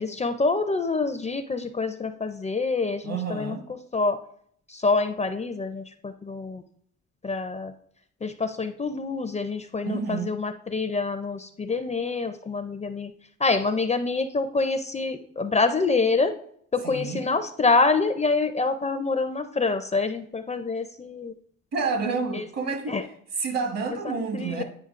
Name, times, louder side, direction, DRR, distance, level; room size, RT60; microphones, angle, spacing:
voice 1, 0.0-3.6 3.9-4.2 4.7-6.6 7.2-7.7 8.2-13.1 13.4-16.3 16.7-21.3 22.3-22.4 22.9-23.0 24.0-24.6, left 3 dB, 25° left, 0.4 m, -26 dB
voice 2, 3.0-3.6 9.8-10.4 16.8-17.2 21.7-23.0 23.4-24.6, right 4 dB, 55° right, 1.4 m, -29 dB
9.5 x 5.1 x 2.5 m
cardioid pair, 90°, 30 cm